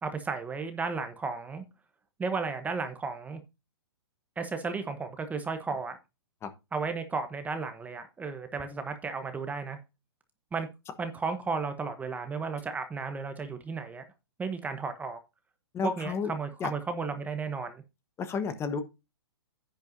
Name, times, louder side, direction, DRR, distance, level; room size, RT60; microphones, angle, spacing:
voice 1, 0.0-1.6 2.2-3.4 4.4-6.0 6.7-9.8 10.5-10.7 11.0-14.0 14.4-15.2 15.8-17.8, right 4 dB, 10° right, 0.9 m, -34 dB
voice 2, 15.7-16.3 16.6-16.7 18.2-18.8, left 5 dB, 20° left, 1.2 m, -31 dB
10.5 x 9.1 x 2.7 m
hypercardioid pair, 130°, 14 cm